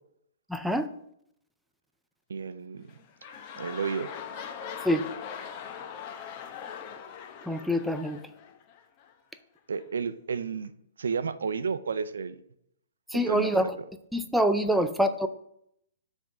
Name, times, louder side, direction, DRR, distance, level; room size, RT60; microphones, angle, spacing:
voice 1, 0.5-0.9 4.8-5.0 7.5-8.2 13.1-13.7 14.1-15.3, equal, ahead, 7 dB, 0.4 m, -25 dB
voice 2, 2.3-2.9 3.6-4.1 9.7-10.7 11.0-12.4 13.1-13.7, right 5 dB, 90° right, 13 dB, 0.5 m, -32 dB
sound 1, 2.8-9.1 9.8-9.9, left 7 dB, 35° left, 0.7 m, -41 dB
7.3 x 3.6 x 5.9 m, 0.74 s
hypercardioid pair, 150°, 0 cm